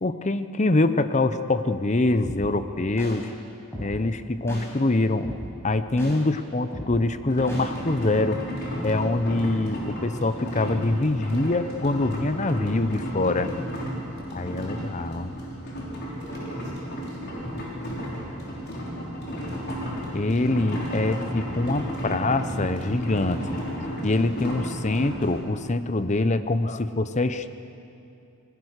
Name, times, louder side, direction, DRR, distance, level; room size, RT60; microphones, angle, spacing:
voice 1, 0.0-3.3 3.8-5.3 5.6-8.4 8.8-13.5 14.3-15.3 20.1-23.6 24.0-27.5, left 2 dB, 30° left, 11 dB, 0.7 m, -24 dB
sound 1, 2.2-2.4 3.0-3.1 3.7-3.9 4.5-4.6 5.2-5.4 6.0-6.1 6.7-6.9 7.5-7.6, equal, 10° left, 6.7 m, -34 dB
sound 2, 7.3-25.4, equal, 45° left, 4.8 m, -33 dB
voice 2, 14.3-15.3 16.0-19.9, right 2 dB, 50° right, -4 dB, 6.8 m, -51 dB
26.0 x 20.0 x 6.6 m, 2.6 s
head